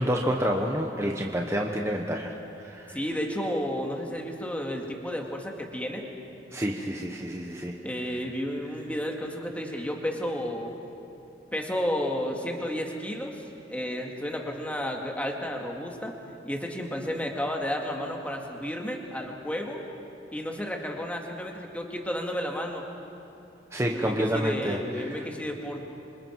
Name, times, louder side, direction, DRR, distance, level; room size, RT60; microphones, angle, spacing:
voice 1, 0.0-2.3 2.6-3.0 6.5-7.7 23.7-24.8 25.1-25.2, equal, 15° right, 0 dB, 1.1 m, -28 dB
voice 2, 2.9-6.1 7.8-10.7 11.5-13.3 13.7-16.1 16.5-19.8 20.3-22.8 23.9-25.8, equal, 10° left, 1 dB, 2.2 m, -32 dB
27.5 x 26.0 x 4.7 m, 2.8 s
head